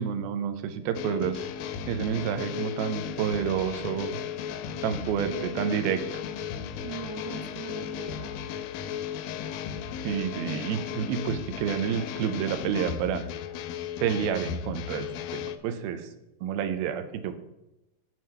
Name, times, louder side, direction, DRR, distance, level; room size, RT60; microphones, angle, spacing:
voice 1, 0.0-1.4 1.9-4.2 4.8-6.2 10.0-13.2 14.0-15.1 15.3-16.1 16.4-17.4, right 8 dB, 90° right, 9 dB, 2.6 m, -29 dB
sound 1, 0.9-15.6, left 8 dB, 80° left, 2.1 m, -35 dB
voice 2, 5.3-5.9 6.8-8.3, right 7 dB, 65° right, 4 dB, 1.7 m, -41 dB
9.6 x 4.7 x 5.6 m, 0.93 s
omnidirectional pair, 4.2 m